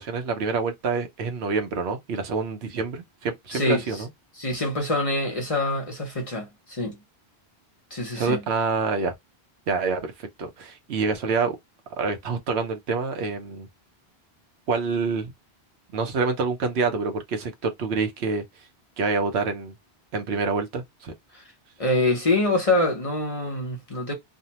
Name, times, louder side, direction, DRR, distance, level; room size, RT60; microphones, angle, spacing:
voice 1, 0.0-4.1 8.1-9.1 9.7-11.6 12.0-13.7 14.7-15.3 15.9-18.4 19.0-19.7 20.1-21.1, right 4 dB, 80° right, 1.0 m, -27 dB
voice 2, 3.5-3.8 4.4-7.0 7.9-8.4 21.3-21.4 21.8-24.1, left 2 dB, 35° left, 0.8 m, -25 dB
2.6 x 2.1 x 2.8 m
omnidirectional pair, 1.1 m